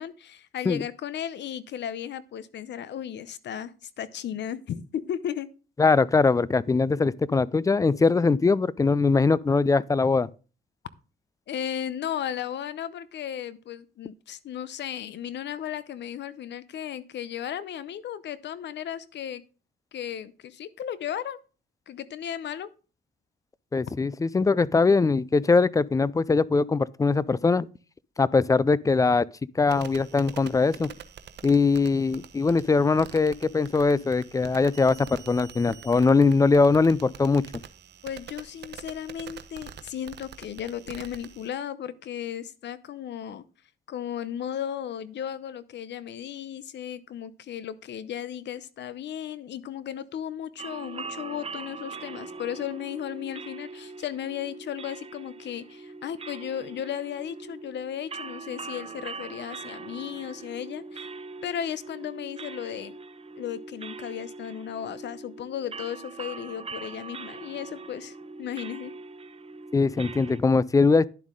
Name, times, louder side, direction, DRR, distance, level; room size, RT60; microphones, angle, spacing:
voice 1, 0.0-5.5 11.5-19.4 19.9-21.4 21.9-22.7 23.8-23.9 38.0-43.4 43.9-61.1 61.4-63.0 63.4-68.9, left 9 dB, 65° left, 0.7 m, -35 dB
voice 2, 5.8-10.3 23.7-27.7 28.2-29.2 29.6-30.9 31.4-37.4 69.7-71.1, left 4 dB, 15° left, 0.3 m, -21 dB
sound 1, 29.7-41.5, right 8 dB, 60° right, 0.9 m, -46 dB
sound 2, 50.6-70.4, right 4 dB, 30° right, 0.7 m, -41 dB
11.0 x 7.4 x 3.7 m
cardioid pair, 90°, 20 cm